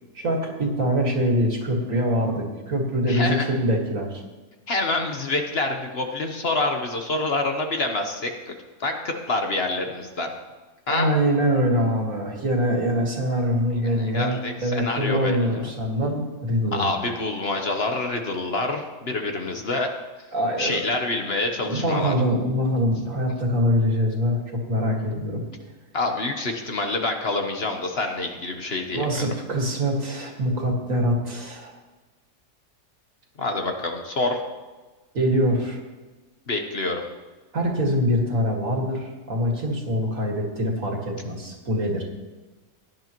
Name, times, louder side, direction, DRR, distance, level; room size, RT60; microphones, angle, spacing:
voice 1, 0.1-4.2 10.9-17.0 20.3-20.9 21.6-25.4 28.9-31.8 35.1-35.8 37.5-42.0, equal, 65° right, 0 dB, 2.4 m, -24 dB
voice 2, 3.1-3.5 4.7-8.5 8.8-10.3 10.9-11.1 13.8-15.7 16.7-19.9 20.6-22.1 25.9-29.3 33.4-34.4 36.5-37.0, left 2 dB, 45° left, 4 dB, 1.3 m, -27 dB
17.0 x 11.0 x 3.0 m, 1.2 s
omnidirectional pair, 1.5 m